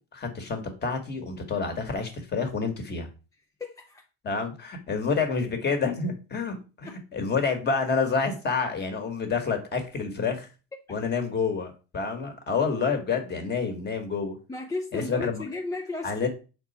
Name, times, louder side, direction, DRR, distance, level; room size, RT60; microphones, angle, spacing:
voice 1, 0.1-3.1 4.2-10.5 10.9-14.4 14.9-15.4 16.0-16.3, left 5 dB, 30° left, 1.7 m, -28 dB
voice 2, 3.6-4.1 6.9-7.0 10.7-10.8 14.5-16.3, left 3 dB, 10° left, 0.5 m, -34 dB
7.0 x 4.4 x 4.2 m
cardioid pair, 140°, 35 cm